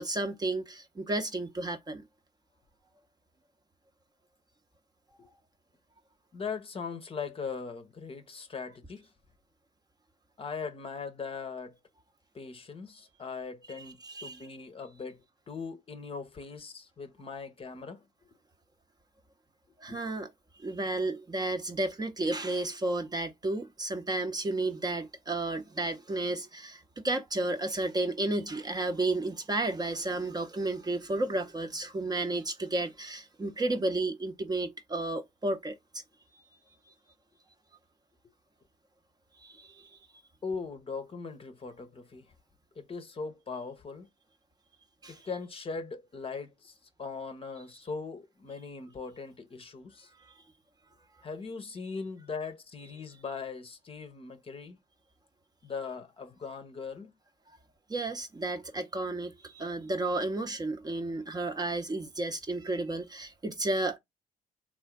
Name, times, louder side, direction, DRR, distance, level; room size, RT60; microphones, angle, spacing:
voice 1, 0.0-2.0 13.7-14.4 19.8-20.3 20.6-35.8 36.3-36.4 39.4-40.0 45.0-45.3 57.9-64.0, right 2 dB, 20° right, 0.7 m, -32 dB
voice 2, 6.3-9.1 10.4-11.8 12.3-18.0 19.9-20.0 40.4-42.3 42.8-44.1 45.1-50.1 51.2-54.8 55.6-57.1, left 5 dB, 30° left, 0.8 m, -40 dB
3.7 x 2.4 x 3.4 m
figure-of-eight pair, 45°, 18 cm